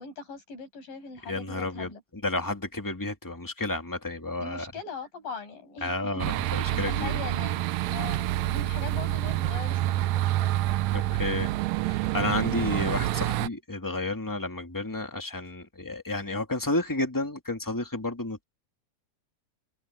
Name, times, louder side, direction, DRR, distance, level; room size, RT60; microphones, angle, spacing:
voice 1, 0.0-2.0 4.4-6.3 6.7-10.6, left 5 dB, 80° left, 9.0 m, -41 dB
voice 2, 1.3-1.9 2.2-4.6 5.8-7.2 10.9-11.5 11.8-18.4, left 2 dB, 10° left, 1.4 m, -31 dB
sound 1, 6.2-13.5, right 15 dB, 90° right, 1.5 m, -27 dB
omnidirectional pair, 3.9 m